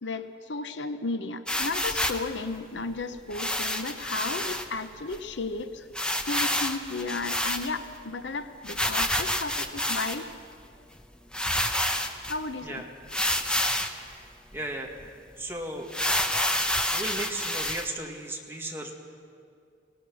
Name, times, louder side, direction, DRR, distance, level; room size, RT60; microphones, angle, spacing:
voice 1, 0.0-5.9 6.3-10.3 12.3-12.9, left 3 dB, 75° left, 10 dB, 0.9 m, -34 dB
sound 1, 1.5-2.3 3.3-4.6 5.1-5.2 5.4-5.5 5.9-8.0 8.6-10.3 11.0-11.1 11.3-12.4 13.1-14.0 14.5-14.6 15.0-15.1 15.9-17.8, left 1 dB, 5° left, 0.9 m, -28 dB
voice 2, 14.5-15.1 15.4-15.9 16.9-18.9, right 1 dB, 15° right, 0 dB, 1.9 m, -35 dB
23.5 x 18.0 x 6.3 m, 2.4 s
head